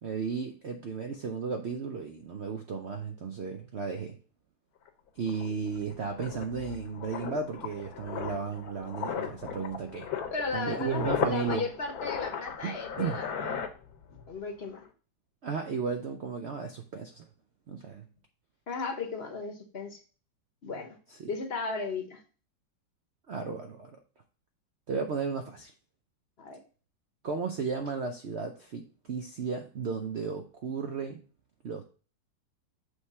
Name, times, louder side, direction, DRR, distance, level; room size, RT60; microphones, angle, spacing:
voice 1, 0.0-4.2 5.2-10.1 10.5-11.7 12.6-13.2 15.4-17.3 17.7-18.1 21.1-21.3 23.3-23.9 24.9-25.7 27.2-31.2 31.6-31.8, right 5 dB, 70° right, 5 dB, 0.6 m, -34 dB
sound 1, 4.9-5.0 5.3-14.3 14.6-14.9, left 7 dB, 65° left, 1.2 m, -36 dB
voice 2, 10.3-13.5 14.3-14.8 18.7-20.0 20.6-21.0 21.3-22.2 26.4-26.6, left 4 dB, 45° left, 5 dB, 0.9 m, -35 dB
6.5 x 3.2 x 5.4 m, 0.38 s
omnidirectional pair, 1.9 m